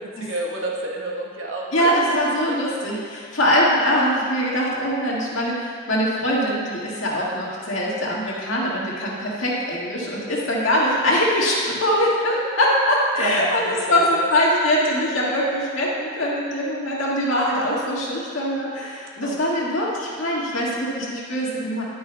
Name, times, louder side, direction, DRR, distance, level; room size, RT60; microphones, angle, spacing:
voice 1, 0.0-2.2 2.5-2.6 13.2-14.3 19.2-19.4 19.6-19.7, right 1 dB, 80° right, -3 dB, 1.2 m, -29 dB
voice 2, 1.7-21.8, equal, 80° left, -5 dB, 1.9 m, -22 dB
10.0 x 9.4 x 2.3 m, 2.3 s
head